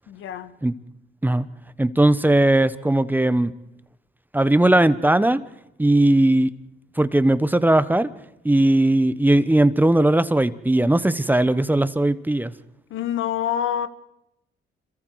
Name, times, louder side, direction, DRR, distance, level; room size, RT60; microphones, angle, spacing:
voice 1, 0.1-0.5 12.9-13.9, left 10 dB, 80° left, 1.5 m, -26 dB
voice 2, 1.8-3.5 4.3-5.4 5.8-6.5 7.0-8.1 8.4-12.5, right 1 dB, 10° right, 1.0 m, -18 dB
27.0 x 22.0 x 4.8 m
cardioid pair, 90°, 20 cm